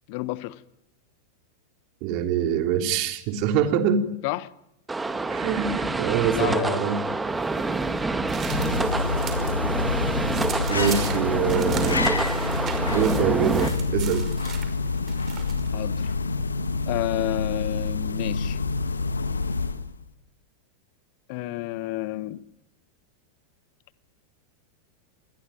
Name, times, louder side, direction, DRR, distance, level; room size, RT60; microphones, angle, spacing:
voice 1, 0.1-0.6 4.2-4.5 6.3-6.8 15.7-16.1 16.9-18.6 21.3-22.4, left 19 dB, 45° left, 1.1 m, -30 dB
voice 2, 2.0-4.1 5.3-7.0 10.7-12.1 12.9-14.3, right 8 dB, 45° right, 3.3 m, -24 dB
sound 1, 4.9-13.7, right 3 dB, 10° right, 1.9 m, -27 dB
sound 2, 7.4-9.6 9.9-15.7, right 7 dB, 25° right, 5.6 m, -39 dB
sound 3, 8.2-20.0, left 4 dB, 75° left, 1.6 m, -27 dB
27.0 x 21.5 x 9.1 m
figure-of-eight pair, 90°, 0 cm